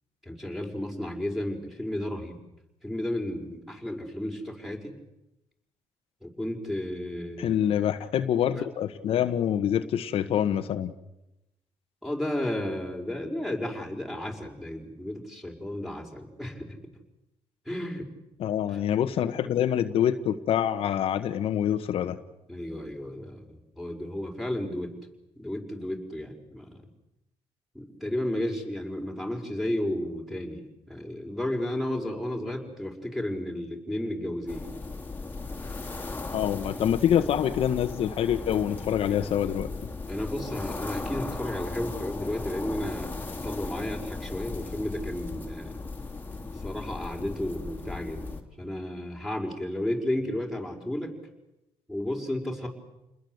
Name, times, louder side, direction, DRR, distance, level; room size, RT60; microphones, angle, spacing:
voice 1, 0.2-2.4 2.8-4.9 6.2-7.6 12.0-16.7 17.7-18.1 18.7-18.8 22.5-24.9 25.4-26.8 27.7-34.7 40.1-45.7 46.5-48.3 48.6-51.1 51.9-52.7, left 1 dB, ahead, 2 dB, 5.5 m, -33 dB
voice 2, 7.4-10.9 18.4-22.2 36.3-39.7, left 10 dB, 65° left, 8 dB, 1.3 m, -26 dB
sound 1, 34.5-48.4, left 3 dB, 15° left, 3.0 m, -37 dB
29.5 x 21.0 x 8.1 m, 0.91 s
cardioid pair, 115°, 10 cm